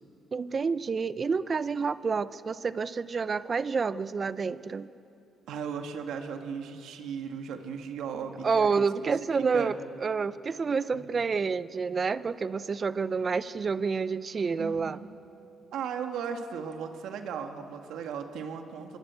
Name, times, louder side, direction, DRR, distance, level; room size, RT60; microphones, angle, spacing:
voice 1, 0.3-4.9 8.4-15.0, right 5 dB, 40° right, 15 dB, 0.7 m, -29 dB
voice 2, 5.5-8.9 9.5-9.8 10.9-11.2 14.6-15.1 15.7-19.0, right 6 dB, 80° right, 5 dB, 2.0 m, -36 dB
25.5 x 21.5 x 8.3 m, 2.8 s
cardioid pair, 90°, 0 cm